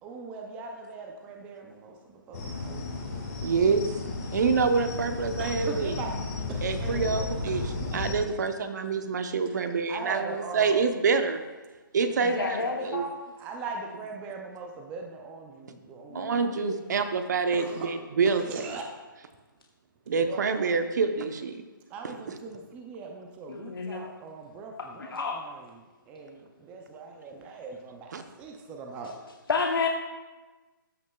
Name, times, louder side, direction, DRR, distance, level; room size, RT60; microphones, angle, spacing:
voice 1, 0.0-3.5 4.3-4.4 5.4-6.2 6.5-7.7 8.3-8.4 9.5-10.8 12.0-12.9 13.4-16.3 17.5-17.9 18.3-18.8 20.2-20.8 21.9-25.5 26.1-29.2, right 4 dB, 10° right, 2 dB, 0.4 m, -40 dB
sound 1, 2.3-8.1, left 3 dB, 45° left, 1.6 m, -34 dB
voice 2, 3.4-3.9 4.3-6.0 6.6-11.4 11.9-12.6 12.8-13.0 16.1-18.7 20.1-21.6 22.0-22.4 28.1-28.2, right 5 dB, 55° right, 8 dB, 0.8 m, -27 dB
voice 3, 12.2-13.2 16.1-16.8 23.5-24.1 24.8-25.4 29.5-29.9, left 4 dB, 85° left, 1 dB, 0.8 m, -30 dB
13.5 x 6.1 x 2.3 m, 1.2 s
hypercardioid pair, 160°, 11 cm